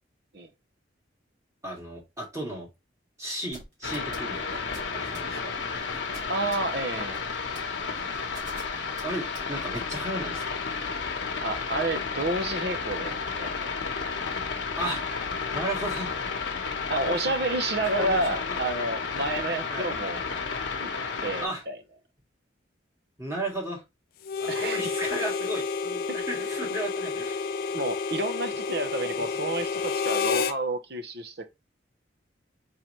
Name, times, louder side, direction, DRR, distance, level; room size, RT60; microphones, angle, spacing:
voice 1, 1.6-2.7 3.2-4.6 4.9-5.5 9.0-10.6 14.8-15.0 15.5-16.1 17.2-17.3 17.9-18.2 18.5-18.6 19.7-19.9 21.4-21.6 23.2-23.8 24.4-27.6 28.8-28.9 29.2-29.3 29.7-29.8, right 1 dB, 15° right, 2.0 m, -34 dB
sound 1, 3.5-9.9, right 1 dB, 40° right, 2.1 m, -45 dB
sound 2, 3.8-21.5, left 5 dB, 85° left, 0.9 m, -32 dB
voice 2, 6.3-7.2 11.4-13.8 16.9-20.2 20.8-20.9 21.2-21.8 24.5-24.8 26.1-26.2 27.7-31.5, right 2 dB, 55° right, 0.8 m, -30 dB
Harmonica, 24.2-30.6, left 5 dB, 50° left, 0.4 m, -30 dB
4.3 x 3.9 x 3.0 m
head